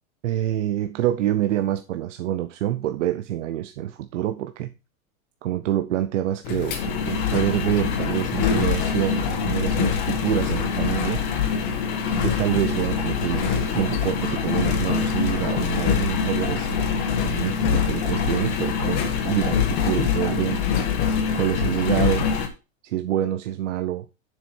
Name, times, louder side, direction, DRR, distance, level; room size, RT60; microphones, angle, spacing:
voice 1, 0.2-4.7 5.4-11.2 12.2-20.6 21.3-22.3 22.8-24.1, right 12 dB, 55° right, 0.8 m, -26 dB
Engine, 6.4-22.5, left 7 dB, 35° left, 1.7 m, -24 dB
sound 1, 11.0-16.8, right 2 dB, 5° left, 3.3 m, -47 dB
7.7 x 6.3 x 4.4 m
supercardioid pair, 170°, 43 cm